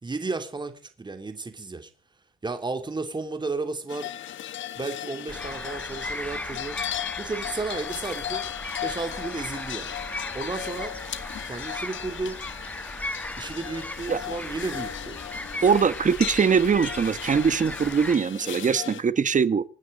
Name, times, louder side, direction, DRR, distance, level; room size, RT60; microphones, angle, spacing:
voice 1, 0.0-1.9 2.4-4.1 4.8-6.8 7.2-8.4 8.8-10.0 10.3-11.0 11.5-12.4 13.4-15.2 15.6-15.7, right 3 dB, 20° right, 3.0 m, -33 dB
sound 1, 3.9-19.0, left 12 dB, 75° left, 1.8 m, -37 dB
sound 2, 5.3-18.2, left 1 dB, 5° left, 1.8 m, -37 dB
voice 2, 15.6-19.6, right 6 dB, 40° right, 1.2 m, -22 dB
25.5 x 9.6 x 5.2 m
cardioid pair, 90°, 20 cm